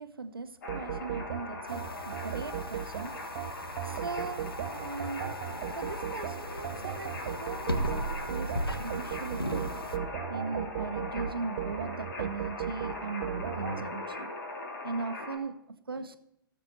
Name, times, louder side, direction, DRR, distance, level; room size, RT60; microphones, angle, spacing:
voice 1, 0.0-3.2 3.8-5.2 5.7-9.7 10.3-14.3 14.8-16.2, right 4 dB, 80° right, 10 dB, 1.0 m, -39 dB
sound 1, 0.6-15.4, left 2 dB, 55° left, 3.2 m, -40 dB
sound 2, 0.7-13.8, right 10 dB, 55° right, 0.8 m, -37 dB
sound 3, 1.7-10.0, equal, 85° left, 0.9 m, -38 dB
16.5 x 7.5 x 4.2 m, 0.76 s
figure-of-eight pair, 100°, 12 cm